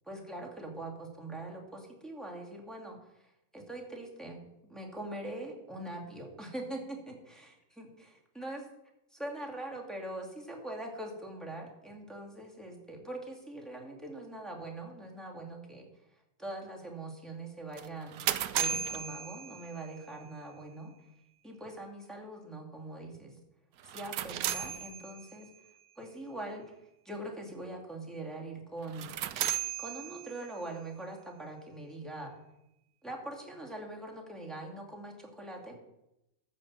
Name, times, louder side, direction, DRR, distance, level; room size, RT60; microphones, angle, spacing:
voice 1, 0.1-4.4 4.7-8.6 9.1-15.9 16.4-18.2 18.5-20.9 21.4-23.4 23.8-25.5 26.0-26.7 27.0-29.1 29.8-32.3 33.0-35.8, right 2 dB, ahead, -2 dB, 2.3 m, -42 dB
sound 1, 17.8-20.0 23.8-25.5 28.8-30.6, right 9 dB, 70° right, 1.0 m, -35 dB
13.5 x 5.6 x 7.5 m, 0.87 s
omnidirectional pair, 1.7 m